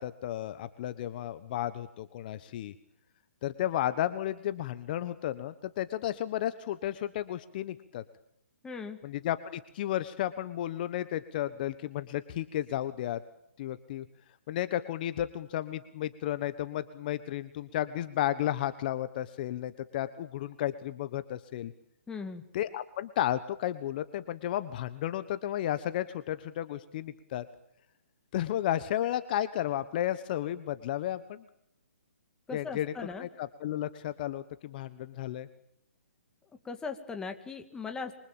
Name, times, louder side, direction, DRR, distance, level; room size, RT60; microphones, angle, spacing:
voice 1, 0.0-2.7 3.4-8.0 9.0-13.2 13.6-14.0 14.5-21.7 22.5-27.4 28.3-31.4 32.5-32.9 33.2-35.5, left 12 dB, 40° left, 12 dB, 1.3 m, -33 dB
voice 2, 8.6-9.0 22.1-22.5 32.5-33.3 36.6-38.1, left 5 dB, 10° left, 6 dB, 2.1 m, -38 dB
27.5 x 24.5 x 8.9 m, 0.73 s
hypercardioid pair, 150°, 8 cm